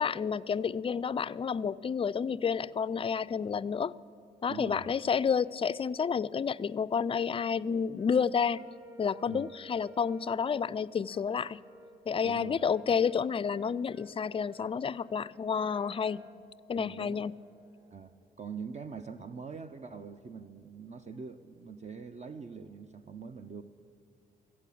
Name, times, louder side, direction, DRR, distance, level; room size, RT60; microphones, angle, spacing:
voice 1, 0.0-4.0 4.4-8.6 9.0-11.6 12.1-16.2 16.7-17.4, left 6 dB, 30° left, 18 dB, 0.3 m, -30 dB
voice 2, 4.5-4.9 9.3-9.5 12.2-12.6 16.7-17.2 17.9-18.1 18.4-23.6, right 5 dB, 35° right, 8 dB, 0.6 m, -43 dB
Brass instrument, 7.9-10.5 11.0-18.0, equal, 20° right, 2.3 m, -56 dB
14.5 x 8.4 x 8.4 m, 2.5 s
supercardioid pair, 65°, 19 cm